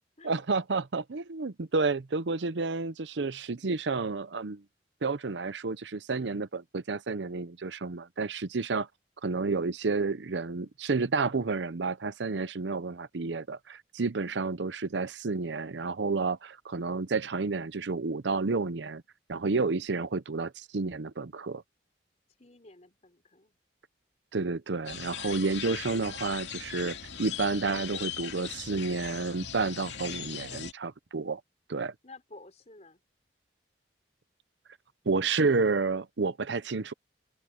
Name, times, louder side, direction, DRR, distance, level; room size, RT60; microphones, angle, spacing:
voice 1, 0.2-4.6 5.0-8.9 9.2-19.0 19.3-21.6 24.3-31.4 31.7-31.9 35.1-36.9, right 4 dB, 85° right, 0.7 m, -30 dB
voice 2, 22.4-23.6 32.0-33.0, left 2 dB, 40° left, 4.5 m, -52 dB
sound 1, 24.9-30.7, left 8 dB, 80° left, 2.5 m, -39 dB
open air
head